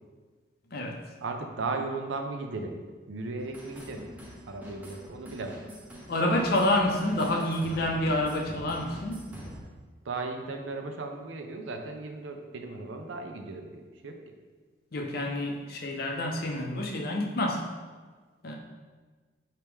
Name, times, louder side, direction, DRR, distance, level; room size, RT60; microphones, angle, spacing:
voice 1, 1.2-2.8 3.1-4.1 4.5-5.6 10.0-14.2, right 3 dB, 80° right, 4 dB, 0.5 m, -36 dB
sound 1, 3.4-9.6, equal, 10° right, 0.5 m, -45 dB
voice 2, 6.1-9.2 14.9-17.6 18.4-18.6, left 1 dB, 50° left, 0 dB, 0.6 m, -28 dB
4.6 x 2.9 x 3.5 m, 1.4 s
head